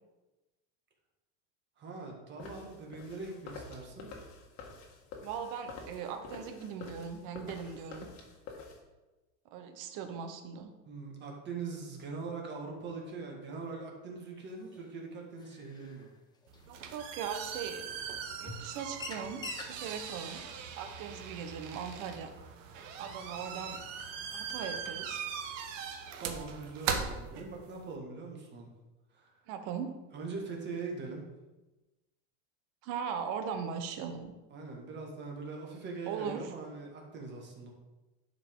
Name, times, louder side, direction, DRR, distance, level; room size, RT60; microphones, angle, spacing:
voice 1, 1.8-4.1 10.8-16.1 26.2-28.7 29.1-29.3 30.1-31.2 34.5-37.7, right 4 dB, 30° right, 0 dB, 1.7 m, -42 dB
sound 1, 2.4-8.8, left 4 dB, 45° left, 1.5 m, -48 dB
voice 2, 5.2-8.1 9.5-10.7 16.7-17.9 18.4-20.4 20.8-22.3 23.0-23.8 24.3-25.2 29.5-29.9 32.8-34.3 36.1-36.4, right 7 dB, 50° right, 7 dB, 1.0 m, -39 dB
sound 2, 14.7-14.8 15.4-16.0 16.4-16.6 17.4-17.5 18.1-18.2 18.5-18.7 19.0-19.7, left 3 dB, 10° left, 0.5 m, -43 dB
sound 3, 16.5-27.9, right 6 dB, 80° right, 1.2 m, -40 dB
10.5 x 5.0 x 3.7 m, 1.1 s
supercardioid pair, 155°, 38 cm